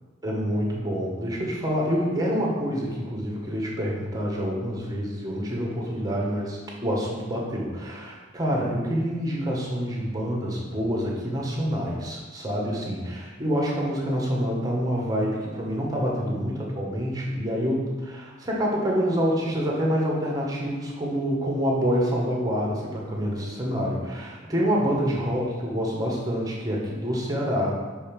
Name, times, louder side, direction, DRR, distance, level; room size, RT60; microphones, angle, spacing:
voice 1, 0.2-27.7, equal, 20° right, -2 dB, 1.4 m, -27 dB
5.6 x 5.4 x 5.3 m, 1.3 s
head